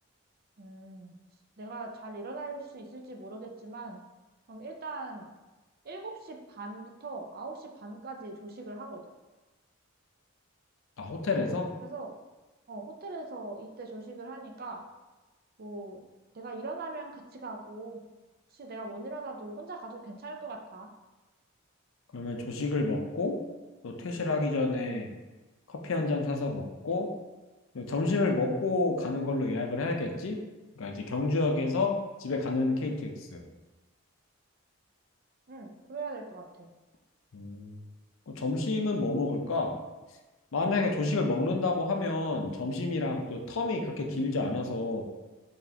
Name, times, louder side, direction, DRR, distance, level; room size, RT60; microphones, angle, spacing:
voice 1, 0.6-1.1 1.6-4.0 4.5-5.3 5.8-9.0 11.9-12.1 12.7-14.8 15.6-16.0 16.3-18.0 18.5-20.9 35.5-36.7, right 3 dB, 45° right, 2 dB, 0.5 m, -41 dB
voice 2, 11.0-11.7 22.1-23.4 23.8-25.1 25.7-27.1 27.7-30.4 30.8-33.4 37.3-37.8 38.3-39.7 40.5-45.0, left 3 dB, 70° left, 2 dB, 0.5 m, -29 dB
3.9 x 3.4 x 2.8 m, 1.2 s
head